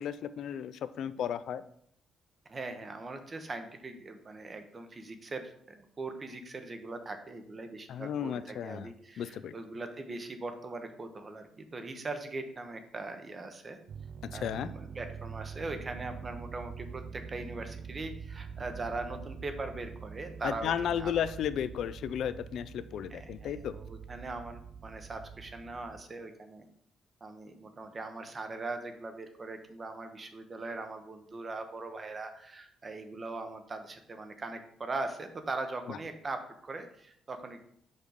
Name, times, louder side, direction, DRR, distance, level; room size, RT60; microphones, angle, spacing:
voice 1, 0.0-1.6 7.9-8.9 9.2-9.5 14.3-14.7 20.4-23.7 35.9-36.0, left 9 dB, 75° left, 13 dB, 0.4 m, -34 dB
voice 2, 2.5-13.8 14.3-21.1 23.1-26.7 27.2-37.6, right 3 dB, 35° right, 7 dB, 0.9 m, -40 dB
sound 1, 13.9-26.0, right 6 dB, 60° right, 0.4 m, -45 dB
5.2 x 5.0 x 4.0 m, 0.68 s
cardioid pair, 90°, 0 cm